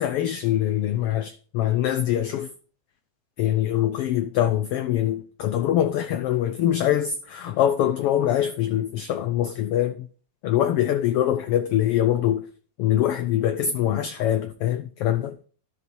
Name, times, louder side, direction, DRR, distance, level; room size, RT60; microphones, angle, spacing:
voice 1, 0.0-2.5 3.4-10.1 10.4-12.4 12.8-15.4, left 11 dB, 90° left, 1.2 m, -23 dB
13.0 x 6.9 x 4.6 m
omnidirectional pair, 3.4 m